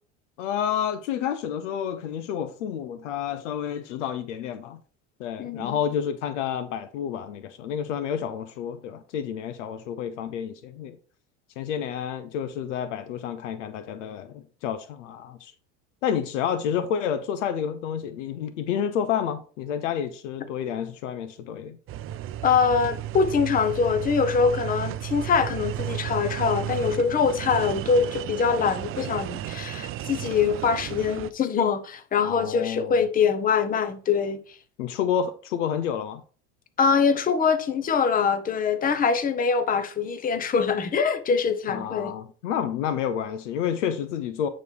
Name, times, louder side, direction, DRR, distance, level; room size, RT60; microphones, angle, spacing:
voice 1, 0.4-4.8 5.2-11.0 11.6-15.5 16.0-21.8 32.2-33.1 34.8-36.2 41.7-44.5, left 8 dB, 85° left, 0.8 m, -29 dB
voice 2, 5.4-5.8 22.4-34.6 36.8-42.1, left 6 dB, 25° left, 0.8 m, -23 dB
sound 1, 21.9-31.3, right 12 dB, 40° right, 0.5 m, -33 dB
9.3 x 3.3 x 4.9 m
supercardioid pair, 100°, 35 cm